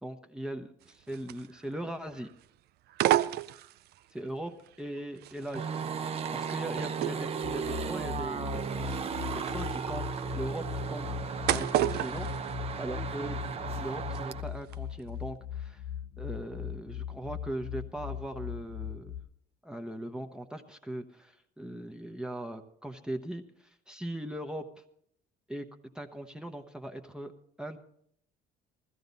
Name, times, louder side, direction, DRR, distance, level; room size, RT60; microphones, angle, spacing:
voice 1, 0.0-2.3 4.1-4.5 4.8-9.1 9.3-11.2 11.5-13.4 13.8-15.8 16.2-19.2 19.6-24.6 25.5-25.7 25.9-27.3 27.6-27.8, right 1 dB, 5° right, 5 dB, 0.9 m, -40 dB
sound 1, 0.8-1.9 2.1-2.5 2.9-4.1 4.7-13.3 13.6-14.2 14.6-14.7, right 14 dB, 70° right, 0.5 m, -33 dB
sound 2, 5.5-14.4, right 6 dB, 35° right, 0.8 m, -35 dB
sound 3, 7.4-19.2, left 10 dB, 85° left, 1.8 m, -39 dB
16.0 x 14.0 x 4.0 m, 0.68 s
cardioid pair, 110°, 17 cm